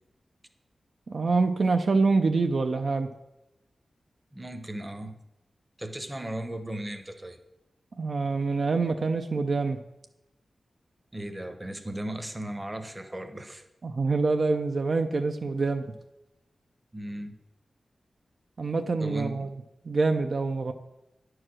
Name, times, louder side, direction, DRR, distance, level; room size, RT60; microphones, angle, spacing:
voice 1, 1.1-3.1 8.0-9.8 13.8-15.9 18.6-19.5 19.9-20.7, right 3 dB, 55° right, 6 dB, 0.5 m, -25 dB
voice 2, 4.3-5.1 5.8-7.4 11.1-13.6 16.9-17.3 19.0-19.5, right 1 dB, 15° right, 7 dB, 0.8 m, -36 dB
9.8 x 4.7 x 6.2 m, 0.92 s
wide cardioid pair, 115°, 0 cm